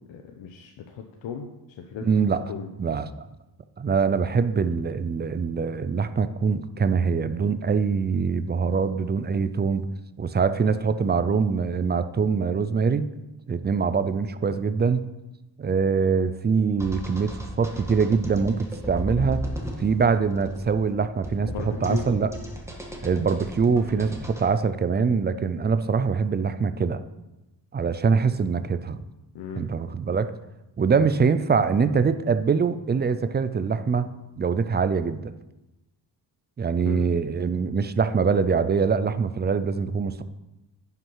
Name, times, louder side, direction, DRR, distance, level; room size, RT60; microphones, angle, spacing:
voice 1, 0.1-1.5 1.8-2.1 2.5-2.7 21.5-22.1 29.3-29.7 36.8-37.0, left 7 dB, 85° left, 4 dB, 0.9 m, -36 dB
voice 2, 2.0-2.4 2.8-3.3 3.8-9.9 10.2-13.1 13.5-15.1 15.6-19.4 19.8-22.3 23.0-27.0 27.7-29.0 29.6-30.3 30.8-35.3 36.6-40.2, right 5 dB, 25° right, 12 dB, 0.4 m, -24 dB
sound 1, 16.8-24.5, equal, 5° right, 1.5 m, -35 dB
9.9 x 5.9 x 5.6 m, 0.98 s
cardioid pair, 130°, 44 cm